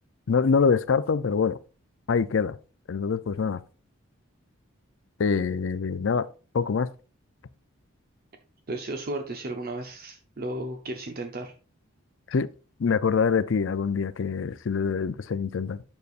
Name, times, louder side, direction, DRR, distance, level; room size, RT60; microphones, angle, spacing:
voice 1, 0.3-1.6 2.1-2.6 2.9-3.6 5.2-6.3 6.5-6.9 12.3-12.5 12.8-15.8, left 5 dB, 65° left, 0.5 m, -25 dB
voice 2, 8.7-11.5, right 2 dB, 45° right, 0.7 m, -34 dB
9.4 x 6.6 x 2.5 m
head